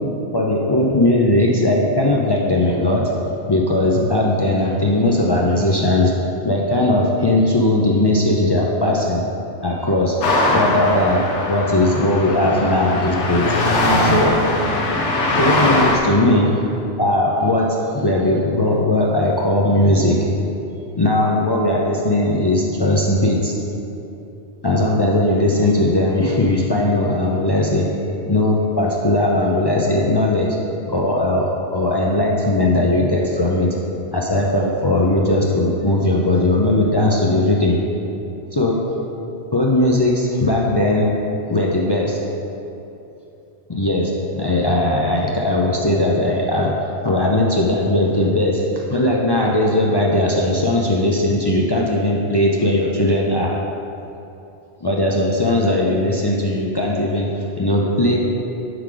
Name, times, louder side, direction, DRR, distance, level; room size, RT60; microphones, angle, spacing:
voice 1, 0.3-3.1 3.5-6.1 6.4-9.2 9.6-10.2 10.5-11.2 11.5-13.6 14.0-14.4 15.4-16.6 17.0-20.3 21.0-23.5 24.6-27.9 28.2-30.6 30.9-33.7 34.1-37.8 38.5-38.8 39.5-41.1 41.5-42.2 43.7-46.7 47.0-53.5 54.8-57.3 57.6-58.2, left 1 dB, 40° left, -3 dB, 0.3 m, -18 dB
sound 1, 10.2-16.0, left 1 dB, 85° left, 1.1 m, -20 dB
7.9 x 4.8 x 3.8 m, 2.8 s
omnidirectional pair, 1.2 m